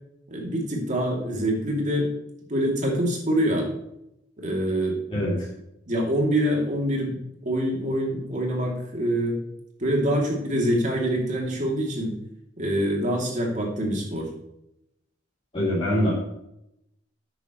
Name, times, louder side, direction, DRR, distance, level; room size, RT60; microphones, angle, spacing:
voice 1, 0.3-2.1 2.5-3.7 4.4-5.0 5.9-7.2 7.4-9.4 9.8-12.1 12.6-14.3, equal, 40° right, -1 dB, 2.9 m, -25 dB
voice 2, 5.1-5.4 15.5-16.1, equal, 30° left, -10 dB, 3.3 m, -23 dB
12.5 x 9.1 x 3.2 m, 0.81 s
head